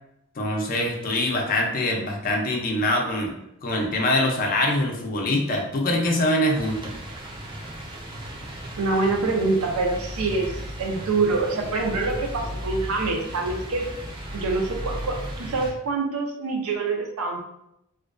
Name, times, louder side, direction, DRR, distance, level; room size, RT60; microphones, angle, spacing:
voice 1, 0.4-3.3 3.6-6.9, left 1 dB, 40° left, 1 dB, 0.4 m, -24 dB
sound 1, 6.5-15.7, equal, 20° right, 0.4 m, -35 dB
voice 2, 8.8-13.9 14.3-17.4, right 3 dB, 75° right, 2 dB, 0.5 m, -25 dB
2.4 x 2.2 x 2.4 m, 0.82 s
head